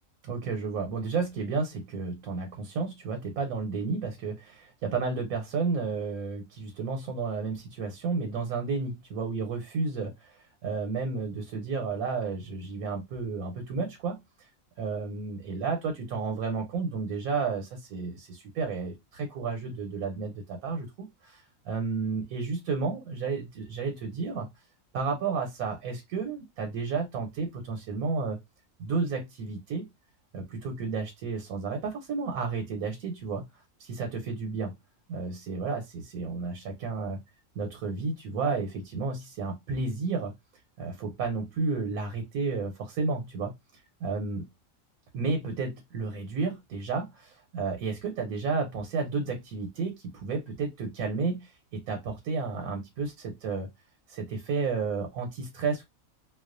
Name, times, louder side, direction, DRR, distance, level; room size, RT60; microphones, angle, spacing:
voice 1, 0.2-14.5 14.8-24.5 24.9-28.4 28.8-29.9 30.3-33.4 33.8-34.7 35.1-37.2 37.6-40.3 40.8-44.4 45.1-53.7 54.1-55.8, right 4 dB, 90° right, 1.0 m, -32 dB
2.2 x 2.2 x 2.4 m
omnidirectional pair, 1.5 m